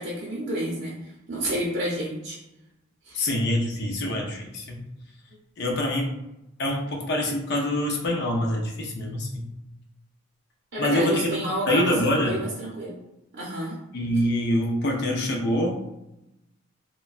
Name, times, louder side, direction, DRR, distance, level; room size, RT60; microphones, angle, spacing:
voice 1, 0.0-2.4 3.0-3.2 10.7-13.0 13.3-13.8, right 1 dB, 55° right, -5 dB, 0.6 m, -30 dB
voice 2, 3.1-4.8 5.6-6.1 6.6-9.5 10.8-11.4 11.7-12.4 13.9-15.8, left 1 dB, 55° left, 1 dB, 0.5 m, -25 dB
3.1 x 2.2 x 2.4 m, 0.90 s
head